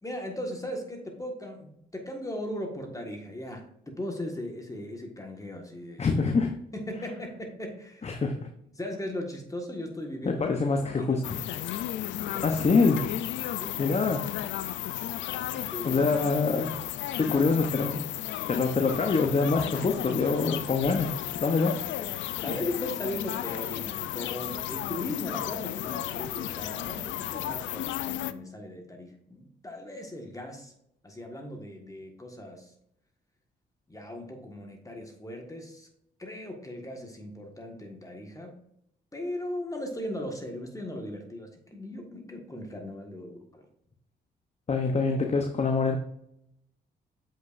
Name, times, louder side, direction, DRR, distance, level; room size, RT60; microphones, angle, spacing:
voice 1, 0.0-6.1 6.7-8.2 8.7-10.4 10.8-11.2 12.2-12.6 13.5-14.0 15.3-16.0 22.0-22.1 22.4-30.7 31.0-32.7 33.9-35.9 36.2-38.6 39.1-43.6, left 1 dB, 15° left, 3 dB, 1.6 m, -38 dB
voice 2, 6.0-6.6 8.0-8.5 10.2-11.4 12.4-13.1 13.8-14.3 15.8-16.8 17.2-18.1 18.5-21.8 44.7-46.0, left 4 dB, 35° left, 5 dB, 0.8 m, -25 dB
sound 1, 11.2-28.3, left 12 dB, 80° left, 0.4 m, -34 dB
7.6 x 5.5 x 2.6 m, 0.75 s
supercardioid pair, 65°, 19 cm